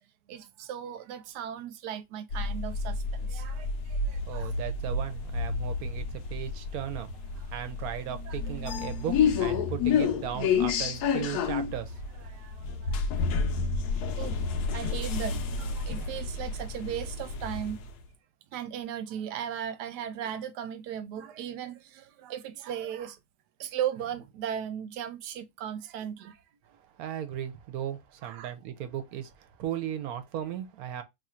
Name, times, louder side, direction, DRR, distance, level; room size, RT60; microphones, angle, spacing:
voice 1, 0.3-4.5 7.4-7.5 8.3-8.5 12.2-13.3 14.2-14.4 14.7-17.8 18.5-23.2 23.6-26.4 28.2-28.5, right 9 dB, 90° right, 1.2 m, -37 dB
sound 1, 2.3-18.0, left 5 dB, 75° left, 1.1 m, -30 dB
voice 2, 4.3-7.1 7.5-12.3 26.9-31.0, right 10 dB, 70° right, 1.0 m, -36 dB
3.0 x 2.5 x 4.2 m
omnidirectional pair, 1.7 m